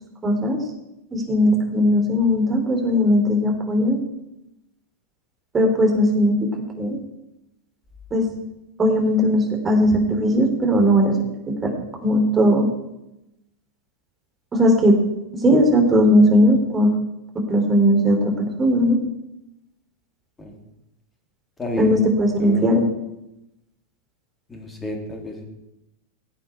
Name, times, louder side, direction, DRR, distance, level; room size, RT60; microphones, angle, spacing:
voice 1, 0.2-0.6 1.1-4.0 5.5-6.5 6.8-7.0 8.1-8.2 8.8-11.1 11.5-11.7 12.0-12.6 14.5-15.0 15.4-16.9 17.5-19.0 21.8-22.8, equal, 20° right, 2 dB, 3.3 m, -18 dB
voice 2, 21.6-21.9 22.4-22.7 24.5-25.4, left 2 dB, 15° left, 2 dB, 3.1 m, -30 dB
17.0 x 8.6 x 4.6 m, 0.88 s
figure-of-eight pair, 90°, 0 cm